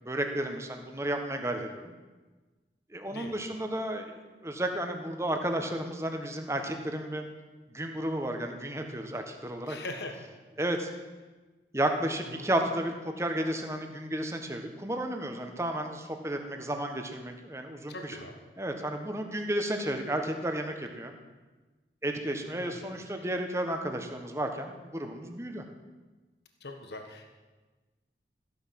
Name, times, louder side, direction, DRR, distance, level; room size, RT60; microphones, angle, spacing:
voice 1, 0.0-1.9 2.9-7.3 7.7-9.8 10.6-10.9 11.7-18.2 18.6-21.1 22.0-25.6, right 1 dB, 15° right, 4 dB, 1.4 m, -32 dB
voice 2, 9.6-10.3 12.3-12.5 17.9-18.4 22.6-22.9 23.1-23.3 26.6-27.3, left 2 dB, 70° left, 4 dB, 1.5 m, -41 dB
15.0 x 11.0 x 7.7 m, 1.3 s
head